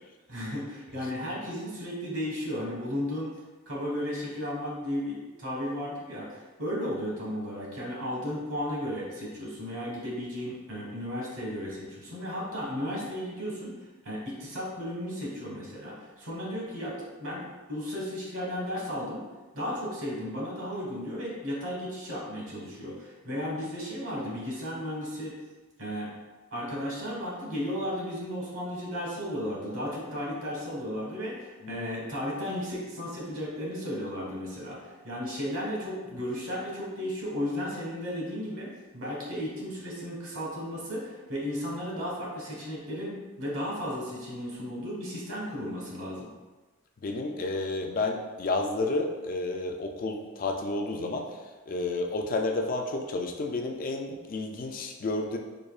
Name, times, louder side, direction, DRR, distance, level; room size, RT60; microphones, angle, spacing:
voice 1, 0.3-3.3 3.7-13.7 14.0-19.2 19.5-25.3 25.8-26.1 26.5-38.7 38.9-46.3, equal, 75° right, -4 dB, 1.3 m, -34 dB
voice 2, 47.0-51.3 51.7-55.4, left 2 dB, 40° left, 3 dB, 0.3 m, -31 dB
4.9 x 2.7 x 2.4 m, 1.3 s
head